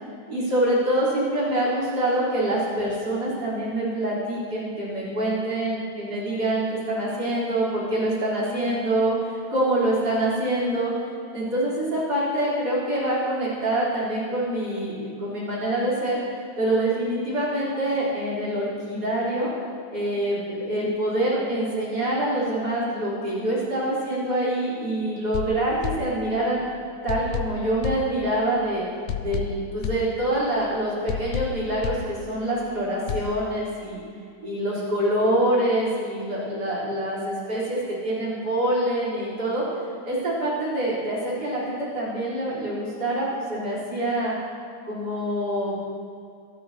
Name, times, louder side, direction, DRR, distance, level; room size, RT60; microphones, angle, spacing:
voice 1, 0.3-10.9 11.3-19.5 19.9-26.6 27.0-28.8 29.2-34.0 34.4-39.6 40.0-44.3 44.8-45.8, right 1 dB, 45° right, -7 dB, 4.7 m, -25 dB
sound 1, 25.3-26.6 27.1-28.6 29.1-30.6 31.1-32.6 33.1-33.4, left 7 dB, 75° left, 1.4 m, -32 dB
25.0 x 11.0 x 2.9 m, 2.4 s
omnidirectional pair, 2.3 m